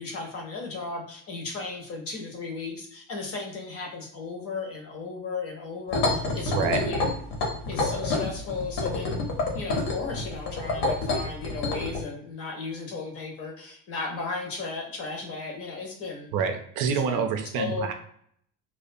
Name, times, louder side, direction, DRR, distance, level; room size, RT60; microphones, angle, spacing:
voice 1, 0.0-7.1 7.7-9.2 9.5-16.3 16.9-17.3 17.5-17.9, left 4 dB, 40° left, 1 dB, 0.6 m, -35 dB
sound 1, 5.9-12.0, left 2 dB, 75° left, 0.8 m, -27 dB
voice 2, 6.5-6.8 16.3-17.9, right 6 dB, 60° right, 5 dB, 0.5 m, -27 dB
2.4 x 2.1 x 2.5 m, 0.65 s
cardioid pair, 170°, 37 cm